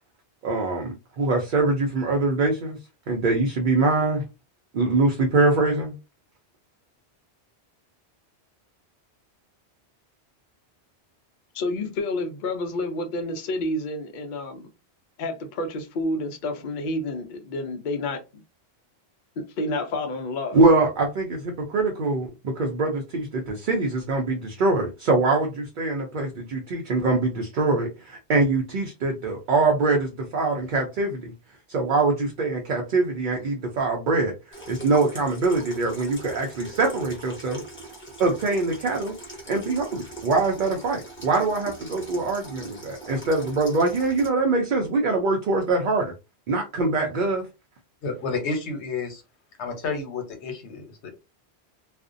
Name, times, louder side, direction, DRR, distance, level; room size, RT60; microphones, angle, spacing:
voice 1, 0.4-2.8 3.1-4.2 4.7-5.9 20.5-31.3 31.7-34.3 34.7-37.6 38.2-39.1 39.5-46.1 46.5-47.5, right 3 dB, 55° right, 0.6 m, -23 dB
voice 2, 11.5-14.7 15.2-18.4 19.4-20.6, left 2 dB, 55° left, 0.6 m, -29 dB
Water tap faucet / Sink (filling or washing), 34.5-44.3, right 2 dB, 10° left, 0.8 m, -41 dB
voice 3, 48.0-49.2 49.6-51.1, left 4 dB, 80° left, 1.0 m, -30 dB
2.4 x 2.1 x 2.5 m
omnidirectional pair, 1.1 m